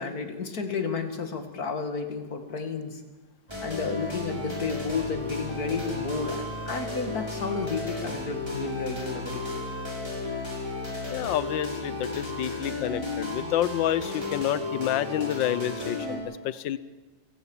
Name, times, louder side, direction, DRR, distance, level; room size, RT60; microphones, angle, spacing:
voice 1, 0.0-3.0 3.6-9.5, left 4 dB, 45° left, 7 dB, 2.5 m, -32 dB
sound 1, 3.5-16.2, left 2 dB, 10° right, 6.1 m, -34 dB
voice 2, 11.1-16.8, left 12 dB, 70° left, 16 dB, 1.6 m, -29 dB
27.5 x 17.0 x 7.3 m, 1.2 s
omnidirectional pair, 2.3 m